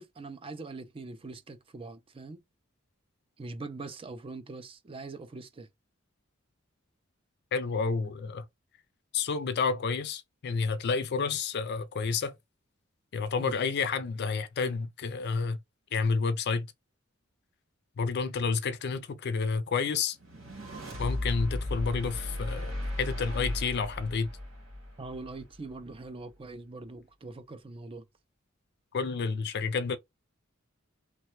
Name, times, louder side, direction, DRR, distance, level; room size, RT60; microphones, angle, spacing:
voice 1, 0.0-2.4 3.4-5.7 13.4-13.6 25.0-28.0, right 3 dB, 25° right, 0.4 m, -42 dB
voice 2, 7.5-8.4 9.1-12.4 13.1-15.6 15.9-16.7 18.0-20.2 21.0-24.3 28.9-30.0, left 5 dB, 55° left, 0.4 m, -30 dB
sound 1, 20.2-25.5, left 1 dB, 85° right, 1.6 m, -35 dB
3.1 x 2.2 x 3.0 m
head